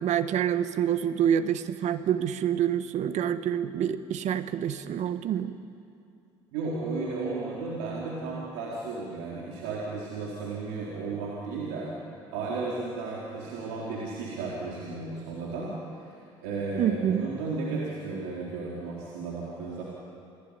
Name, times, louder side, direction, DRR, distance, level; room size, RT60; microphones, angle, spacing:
voice 1, 0.0-5.5 16.8-17.2, right 9 dB, 60° right, 11 dB, 1.6 m, -27 dB
voice 2, 6.5-11.9 12.3-15.7 16.0-19.8, right 3 dB, 80° right, -5 dB, 4.4 m, -34 dB
28.5 x 19.0 x 10.0 m, 2.5 s
hypercardioid pair, 60°, 13 cm